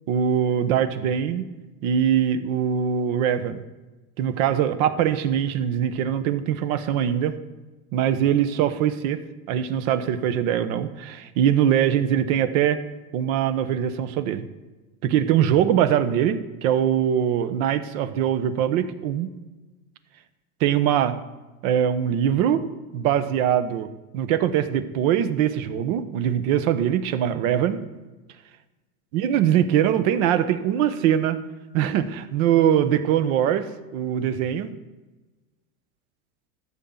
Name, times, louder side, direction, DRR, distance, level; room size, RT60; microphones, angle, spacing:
voice 1, 0.1-1.5 1.8-3.6 4.2-7.3 7.9-9.2 9.5-12.8 13.1-14.4 15.0-19.3 20.6-21.2 21.6-22.7 22.9-27.8 29.1-31.4 31.7-34.7, right 9 dB, 65° right, 11 dB, 1.2 m, -22 dB
13.5 x 7.4 x 3.9 m, 1.2 s
supercardioid pair, 115°, 43 cm